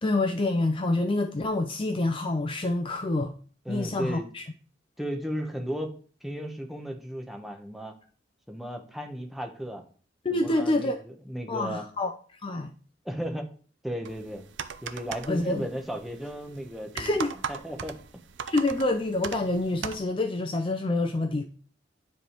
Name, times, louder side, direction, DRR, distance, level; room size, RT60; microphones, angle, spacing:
voice 1, 0.0-3.3 3.7-4.4 10.2-11.0 11.5-12.1 12.4-12.7 15.3-15.7 16.9-17.3 18.5-21.4, left 2 dB, 30° left, 0.5 m, -27 dB
voice 2, 3.6-4.2 5.0-7.9 8.5-9.8 10.3-11.9 13.0-13.5 13.8-14.4 14.8-18.0, equal, ahead, 1.0 m, -35 dB
sound 1, 14.1-20.0, right 6 dB, 80° right, 0.5 m, -39 dB
9.7 x 3.4 x 4.5 m
head